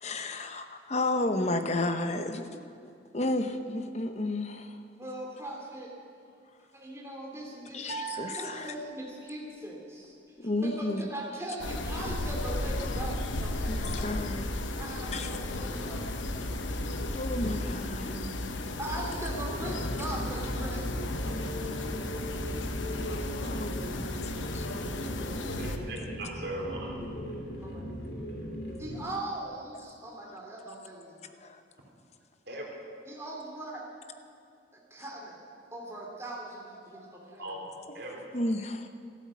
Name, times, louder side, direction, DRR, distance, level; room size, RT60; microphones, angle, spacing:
voice 1, 0.0-4.8 7.7-8.7 10.4-11.1 13.7-14.5 15.1-15.3 17.1-18.1 23.3-24.7 30.3-30.4 31.3-31.6 38.3-38.9, left 2 dB, 35° left, 8 dB, 0.9 m, -32 dB
voice 2, 5.0-5.9 6.7-7.9 8.4-10.2 10.4-10.5 10.8-13.8 14.8-16.3 18.1-18.4 18.7-20.9 21.2-21.6 24.4-24.7 27.6-27.9 28.8-31.2 33.1-33.8 34.9-35.4 35.7-37.5, right 1 dB, 15° right, -2 dB, 2.8 m, -40 dB
sound 1, 7.8-9.3, right 6 dB, 35° right, 2.0 m, -40 dB
sound 2, 11.6-25.8, left 1 dB, 80° left, 1.1 m, -34 dB
sound 3, 19.3-29.0, equal, 55° left, 3.1 m, -38 dB
voice 3, 25.6-27.0 32.5-32.7 37.4-38.2, right 1 dB, 60° right, -1 dB, 3.4 m, -39 dB
13.0 x 12.5 x 8.4 m, 2.5 s
head